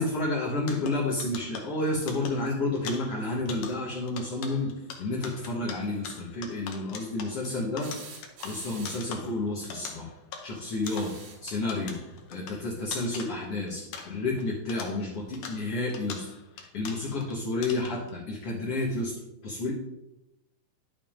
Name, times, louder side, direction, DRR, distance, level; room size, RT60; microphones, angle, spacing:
voice 1, 0.0-4.7 5.0-7.9 8.4-10.1 10.4-11.1 11.4-12.0 12.3-16.3 16.6-19.1 19.4-19.7, left 2 dB, 60° left, -4 dB, 1.7 m, -30 dB
sound 1, 0.6-14.4 14.7-17.3 17.6-18.1, left 6 dB, 75° left, 1.5 m, -43 dB
sound 2, 7.8-9.2 10.7-11.5 13.2-13.3 14.7-14.8, right 5 dB, 85° right, 3.2 m, -46 dB
11.0 x 7.1 x 2.5 m, 0.90 s
omnidirectional pair, 4.2 m